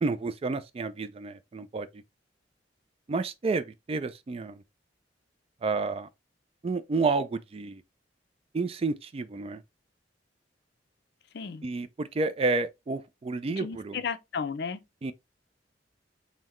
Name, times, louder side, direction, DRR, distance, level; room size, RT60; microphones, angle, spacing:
voice 1, 0.0-2.0 3.1-4.6 5.6-6.1 6.6-7.8 8.5-9.6 11.6-14.0 15.0-15.1, right 3 dB, 30° right, 0.3 m, -30 dB
voice 2, 11.3-11.7 13.6-14.8, left 6 dB, 60° left, 0.5 m, -34 dB
5.6 x 2.1 x 3.0 m
head